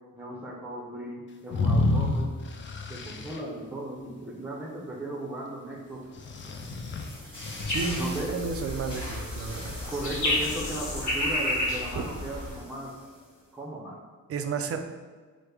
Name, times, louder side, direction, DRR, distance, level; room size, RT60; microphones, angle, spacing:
voice 1, 0.1-2.3 2.9-6.0 8.0-8.4 9.9-12.9 13.5-14.0, right 1 dB, 5° right, -2 dB, 0.6 m, -36 dB
sound 1, 1.5-3.4 6.2-8.2, left 2 dB, 40° left, 0.4 m, -29 dB
sound 2, 5.9-13.4, equal, 15° left, 1.4 m, -43 dB
sound 3, 7.6-12.6, left 1 dB, 65° left, 1.4 m, -31 dB
voice 2, 7.7-9.8 11.9-12.1 14.3-14.8, right 5 dB, 50° right, 6 dB, 0.4 m, -32 dB
6.1 x 2.1 x 3.3 m, 1.5 s
wide cardioid pair, 125°, 31 cm